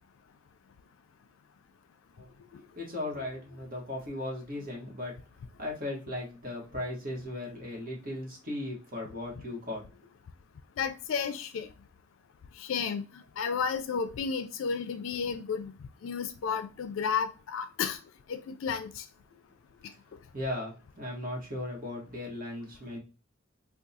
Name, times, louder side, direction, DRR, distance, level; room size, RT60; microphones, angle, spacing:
voice 1, 2.2-5.2 5.6-9.8 20.3-23.0, left 1 dB, 45° right, 1.2 m, -37 dB
voice 2, 10.8-11.7 12.6-15.8 16.0-18.0 18.3-19.0, left 6 dB, 70° left, 0.4 m, -32 dB
3.5 x 2.3 x 2.7 m
head